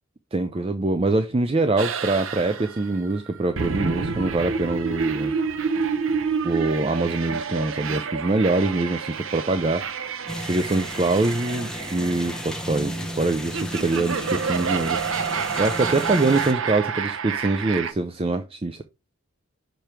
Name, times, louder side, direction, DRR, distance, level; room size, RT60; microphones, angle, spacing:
voice 1, 0.3-5.3 6.4-9.8 10.4-18.8, right 2 dB, 25° right, 0.4 m, -24 dB
sound 1, 1.8-17.9, right 5 dB, 65° right, 0.7 m, -29 dB
sound 2, 10.3-16.5, equal, 5° left, 0.8 m, -34 dB
5.9 x 5.0 x 4.4 m
head